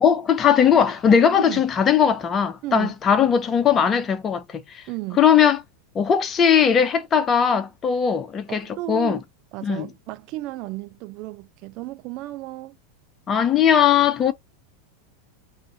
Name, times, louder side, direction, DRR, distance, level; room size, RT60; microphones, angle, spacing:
voice 1, 0.0-4.8 5.2-5.6 5.9-9.2 9.6-9.9 13.3-14.3, left 8 dB, 30° left, 0.5 m, -19 dB
voice 2, 2.6-2.9 4.9-5.2 8.5-9.2 9.5-12.8, right 18 dB, 50° right, 0.4 m, -33 dB
2.5 x 2.4 x 2.7 m
hypercardioid pair, 95°, 0 cm